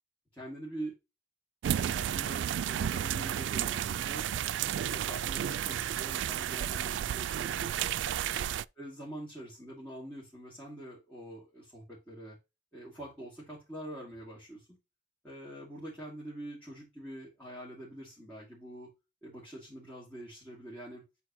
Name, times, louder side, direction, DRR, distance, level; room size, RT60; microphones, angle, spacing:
voice 1, 0.3-1.0 1.7-4.3 4.6-7.9 8.3-8.5 8.8-12.4 12.7-14.8 15.2-18.9 19.2-21.0, right 1 dB, 10° left, -8 dB, 2.6 m, -45 dB
sound 1, 1.6-8.6, right 10 dB, 80° right, 0.3 m, -32 dB
10.0 x 4.0 x 3.0 m, 0.25 s
head